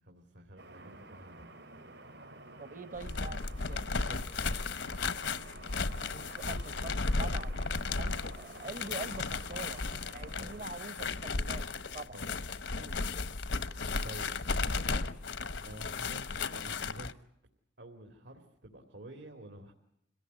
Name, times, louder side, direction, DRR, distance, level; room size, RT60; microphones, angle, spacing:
voice 1, 0.0-1.5 3.9-4.4 10.4-10.6 12.1-12.3 12.8-13.0 14.0-15.1 15.6-17.2 17.8-19.7, right 1 dB, 85° right, 3 dB, 2.9 m, -49 dB
sound 1, 0.6-11.1, right 2 dB, 65° right, 3.8 m, -51 dB
voice 2, 2.6-3.8 6.1-7.6 8.0-9.8 10.1-11.7 11.9-12.2 12.7-12.9, right 3 dB, 45° right, 15 dB, 0.9 m, -44 dB
sound 2, 2.9-17.1, left 4 dB, 80° left, 1.0 m, -35 dB
26.5 x 17.5 x 9.6 m, 0.76 s
head